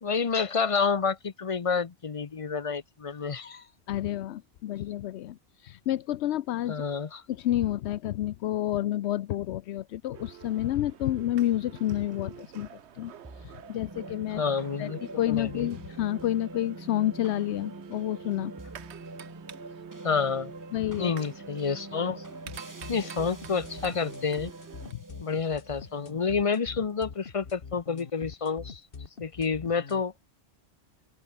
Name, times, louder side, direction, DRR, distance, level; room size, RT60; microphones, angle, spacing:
voice 1, 0.0-3.7 6.7-7.2 14.4-15.7 20.0-20.5 21.0-22.2 22.9-24.5 25.2-28.8 29.2-30.1, left 5 dB, 35° left, 0.7 m, -29 dB
voice 2, 3.9-6.8 7.3-14.4 14.8-14.9 15.2-18.5 20.7-21.1 24.9-25.0, left 13 dB, 85° left, 0.9 m, -30 dB
sound 1, 10.1-24.9, right 9 dB, 85° right, 1.2 m, -48 dB
sound 2, 13.2-27.7, right 2 dB, 15° right, 1.3 m, -45 dB
sound 3, 22.5-30.0, left 5 dB, 55° left, 1.7 m, -43 dB
open air
omnidirectional pair, 1.1 m